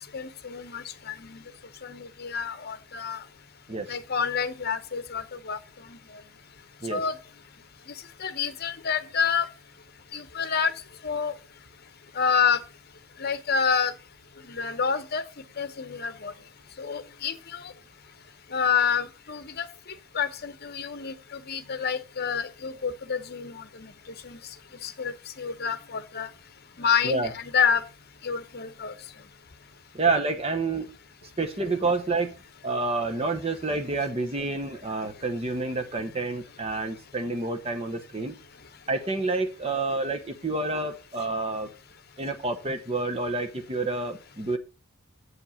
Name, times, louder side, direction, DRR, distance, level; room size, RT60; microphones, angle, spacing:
voice 1, 0.1-1.4 1.8-3.2 3.9-6.2 6.9-7.2 7.9-9.5 10.1-11.3 12.1-12.6 13.2-13.9 14.4-15.2 15.6-16.3 16.8-17.7 18.5-19.7 20.1-23.9 24.2-24.4 24.8-26.3 26.8-27.8 28.2-28.9, left 6 dB, 45° left, 0.9 m, -28 dB
voice 2, 29.9-30.9 31.2-32.3 32.6-38.3 38.9-41.7 42.2-44.6, right 3 dB, 25° right, 0.8 m, -28 dB
8.1 x 5.3 x 7.0 m
head